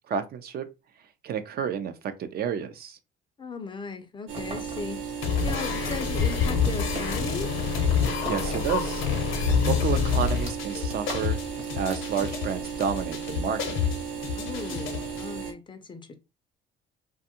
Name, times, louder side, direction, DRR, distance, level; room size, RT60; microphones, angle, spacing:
voice 1, 0.1-0.7 1.2-1.9 2.2-3.0 8.2-11.4 11.8-13.8, right 7 dB, 50° right, 0.4 m, -30 dB
voice 2, 3.4-7.5 14.3-16.1, left 4 dB, 25° left, 0.4 m, -37 dB
sound 1, 4.3-7.4 7.7-9.0 9.3-9.4 9.8-12.6, right 1 dB, 30° right, 0.8 m, -42 dB
sound 2, 4.3-15.5, right 6 dB, 80° right, 0.8 m, -35 dB
sound 3, 5.2-15.2, left 6 dB, 85° left, 0.7 m, -27 dB
2.5 x 2.2 x 2.8 m
cardioid pair, 130°, 20 cm